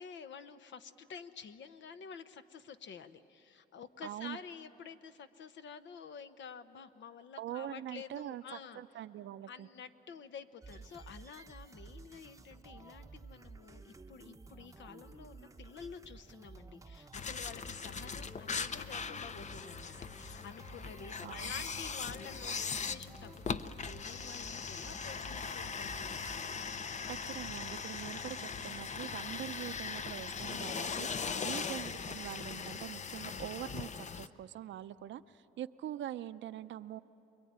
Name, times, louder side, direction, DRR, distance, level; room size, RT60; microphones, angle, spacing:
voice 1, 0.0-8.8 9.5-26.3 31.2-31.6, left 6 dB, 70° left, 10 dB, 1.1 m, -50 dB
voice 2, 4.0-4.4 7.4-9.7 21.2-21.5 27.1-37.0, right 12 dB, 70° right, 12 dB, 0.7 m, -44 dB
sound 1, 10.6-26.5, right 4 dB, 15° right, 0.8 m, -53 dB
sound 2, 17.1-34.3, left 5 dB, 35° left, 0.7 m, -40 dB
27.0 x 22.0 x 9.6 m, 3.0 s
cardioid pair, 90°, 20 cm